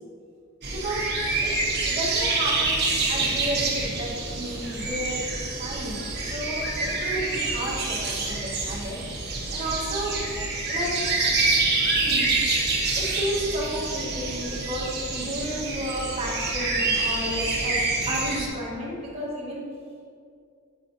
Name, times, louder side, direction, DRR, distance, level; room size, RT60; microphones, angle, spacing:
sound 1, 0.6-18.5, right 3 dB, 50° right, 0.9 m, -27 dB
voice 1, 0.7-1.1 1.4-1.5 1.8-5.2 5.6-10.2 10.7-10.9 12.0-12.3 13.0-17.8 18.1-19.6, equal, 25° right, -6 dB, 1.2 m, -32 dB
7.4 x 5.0 x 2.6 m, 2.3 s
head